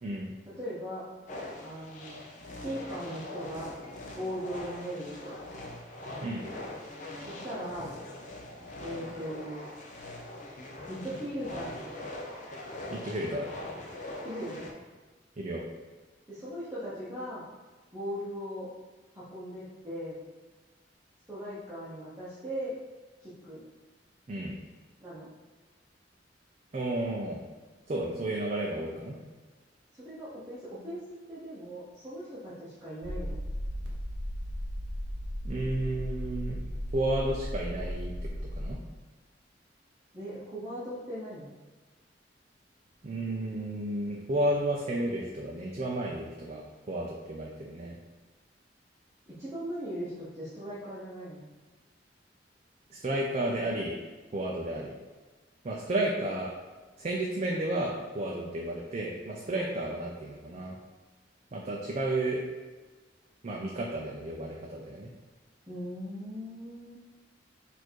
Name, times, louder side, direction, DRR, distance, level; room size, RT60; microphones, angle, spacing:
voice 1, 0.0-0.3 6.2-6.5 12.9-13.5 15.4-15.6 24.3-24.6 26.7-27.4 27.9-29.2 35.4-36.6 36.9-38.8 43.0-48.0 52.9-53.9 54.3-54.9 55.6-56.5 57.0-60.8 61.5-62.4 63.4-65.1, right 1 dB, 40° right, -2 dB, 0.5 m, -32 dB
voice 2, 0.6-1.1 1.6-2.2 2.6-3.7 4.1-5.4 7.2-7.9 8.8-9.7 10.9-12.1 14.2-14.7 16.3-17.4 17.9-18.7 19.1-20.2 21.3-22.8 23.2-23.6 25.0-25.3 29.9-31.0 31.3-33.4 40.1-41.5 49.3-51.5 58.3-58.5 65.7-67.0, equal, 15° right, -11 dB, 0.8 m, -39 dB
sound 1, 1.3-14.7, left 1 dB, 45° left, 0.7 m, -42 dB
sound 2, 33.0-38.7, equal, 70° right, 0.9 m, -36 dB
4.4 x 2.6 x 4.5 m, 1.3 s
head